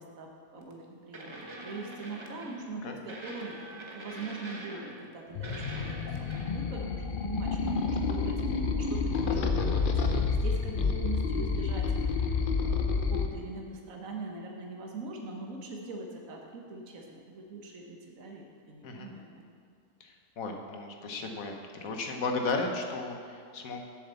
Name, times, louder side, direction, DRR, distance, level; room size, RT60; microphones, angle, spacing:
voice 1, 0.0-3.6 3.9-19.4, right 3 dB, 60° right, 0 dB, 1.6 m, -42 dB
sound 1, 0.6-0.7 1.1-2.7 3.1-5.1 5.4-6.7 9.0-9.1, right 1 dB, 20° right, 0.9 m, -44 dB
sound 2, 5.4-13.3, left 4 dB, 50° left, 0.7 m, -29 dB
voice 2, 20.0-21.5 21.8-23.8, left 3 dB, 65° left, 3 dB, 1.4 m, -34 dB
8.1 x 7.4 x 7.0 m, 2.2 s
omnidirectional pair, 1.6 m